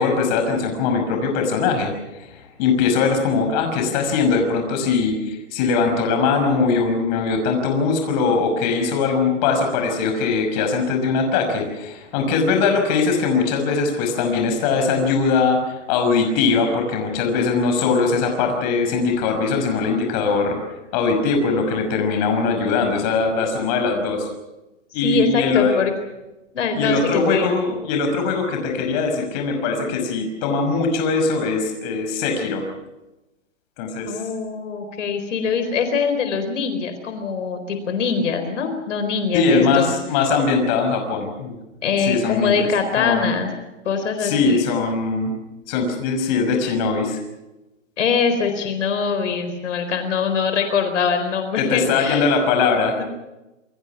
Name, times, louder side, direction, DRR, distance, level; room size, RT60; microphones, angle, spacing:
voice 1, 0.0-2.3 2.6-20.6 20.9-24.3 24.9-25.8 26.7-32.6 33.8-34.1 39.3-41.5 42.1-42.7 43.0-43.3 44.2-45.3 45.7-47.2 51.6-53.0, left 4 dB, 35° left, 4 dB, 5.9 m, -21 dB
voice 2, 25.0-25.9 26.5-27.5 34.1-40.0 41.8-43.5 43.8-44.6 48.0-52.4 53.0-53.1, left 5 dB, 75° left, 7 dB, 4.3 m, -23 dB
28.0 x 22.0 x 6.0 m, 1.0 s
hypercardioid pair, 160°, 37 cm